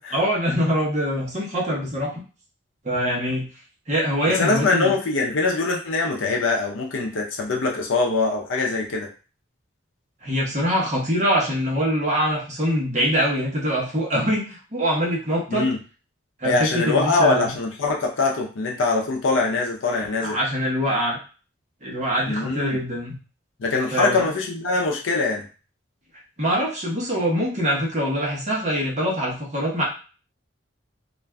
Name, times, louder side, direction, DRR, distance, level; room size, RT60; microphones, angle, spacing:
voice 1, 0.1-2.1 2.8-3.5 3.9-4.9 10.2-15.7 16.4-17.5 20.2-21.2 21.8-23.2 23.9-24.2 26.4-29.8, equal, 35° right, -3 dB, 0.8 m, -24 dB
voice 2, 4.3-9.1 15.5-15.8 16.4-20.4 22.3-22.8 23.6-25.4, left 3 dB, 80° left, 0 dB, 0.5 m, -23 dB
2.4 x 2.3 x 3.3 m, 0.35 s
head